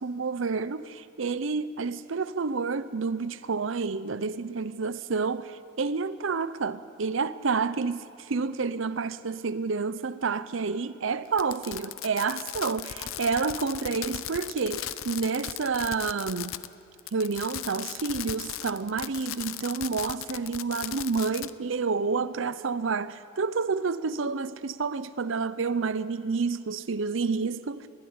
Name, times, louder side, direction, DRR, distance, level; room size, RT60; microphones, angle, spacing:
voice 1, 0.0-16.6 17.1-27.9, right 4 dB, 65° right, 0.6 m, -29 dB
Fireworks, 11.3-16.7 17.0-21.5, left 12 dB, 80° left, 0.6 m, -37 dB
21.5 x 13.0 x 9.6 m
head